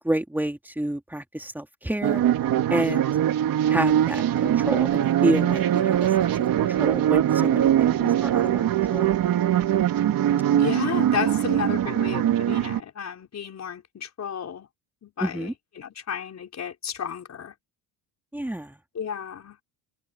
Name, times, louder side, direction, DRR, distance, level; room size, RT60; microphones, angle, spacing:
voice 1, 0.0-2.2 2.7-3.1 3.7-6.3 6.6-8.6 8.9-9.1 15.2-15.5 18.3-18.8, right 1 dB, 5° right, 3.0 m, -29 dB
sound 1, 2.0-12.8, right 11 dB, 55° right, 3.3 m, -22 dB
voice 2, 8.0-8.7 10.5-14.7 15.0-17.5 18.9-19.6, left 8 dB, 40° left, 5.1 m, -33 dB
supercardioid pair, 100°, 41 cm